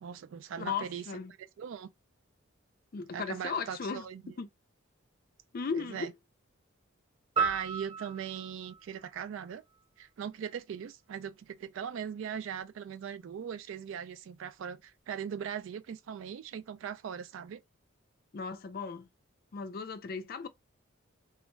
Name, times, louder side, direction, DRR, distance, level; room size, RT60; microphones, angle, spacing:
voice 1, 0.0-1.0 1.6-1.9 3.1-4.3 5.8-6.1 7.4-9.6 10.0-17.6, right 8 dB, 65° right, 0.3 m, -39 dB
voice 2, 0.6-1.3 2.9-4.1 4.4-4.5 5.5-6.1 18.3-19.1 19.5-20.5, left 5 dB, 45° left, 0.4 m, -36 dB
sound 1, 7.4-9.8, right 5 dB, 30° right, 0.9 m, -35 dB
2.4 x 2.1 x 3.0 m
head